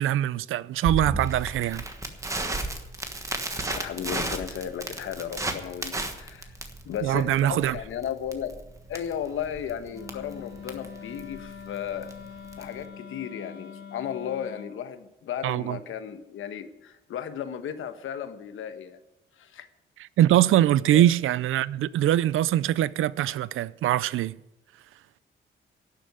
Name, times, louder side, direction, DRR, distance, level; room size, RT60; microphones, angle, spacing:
voice 1, 0.0-1.8 7.0-7.8 15.4-15.8 20.2-24.4, right 12 dB, 85° right, 0.5 m, -23 dB
Crackle, 0.8-12.8, right 2 dB, 15° right, 1.3 m, -34 dB
voice 2, 3.6-6.6 6.8-8.5 8.9-12.1 12.6-19.0 19.4-19.7 20.9-21.0, left 9 dB, 80° left, 1.2 m, -35 dB
Wind instrument woodwind instrument, 9.9-14.8, left 7 dB, 50° left, 1.9 m, -43 dB
11.5 x 7.7 x 9.5 m
wide cardioid pair, 160°, 20 cm